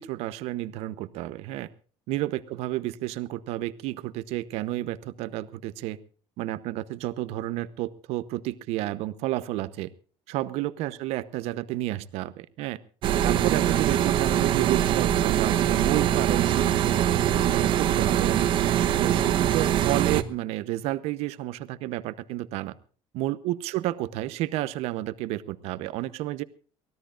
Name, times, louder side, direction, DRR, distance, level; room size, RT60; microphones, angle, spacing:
voice 1, 0.0-1.7 2.1-6.0 6.4-9.9 10.3-12.8 13.2-18.6 19.0-22.7 23.1-26.4, right 15 dB, 70° right, 14 dB, 0.9 m, -31 dB
sound 1, 13.0-20.2, right 10 dB, 50° right, 1.0 m, -23 dB
23.5 x 17.0 x 2.5 m, 0.40 s
cardioid pair, 165°, 11 cm